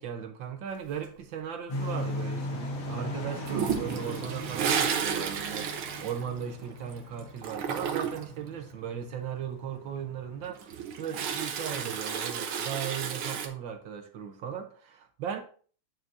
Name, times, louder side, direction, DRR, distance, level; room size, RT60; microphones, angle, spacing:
voice 1, 0.0-15.4, right 8 dB, 70° right, 1.6 m, -37 dB
sound 1, 1.7-10.5, left 1 dB, 85° left, 2.2 m, -39 dB
Toilet flush, 3.5-6.9 7.2-8.4 10.4-13.5, right 7 dB, 85° right, 1.8 m, -32 dB
9.1 x 6.1 x 2.7 m
omnidirectional pair, 2.3 m